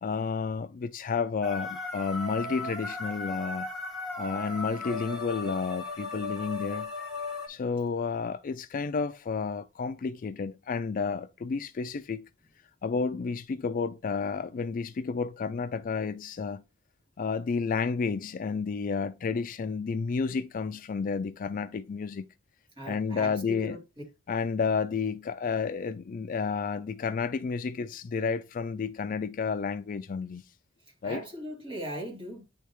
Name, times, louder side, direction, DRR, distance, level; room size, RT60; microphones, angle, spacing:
voice 1, 0.0-3.7 4.2-6.9 7.5-12.2 12.8-16.6 17.2-22.3 22.9-23.8 24.3-30.4 31.0-31.2, left 5 dB, 40° left, 0.3 m, -31 dB
sound 1, 1.4-7.5, left 3 dB, 5° right, 1.6 m, -36 dB
voice 2, 22.8-23.8 31.0-32.4, right 1 dB, 25° right, 2.6 m, -39 dB
9.3 x 3.4 x 2.9 m
head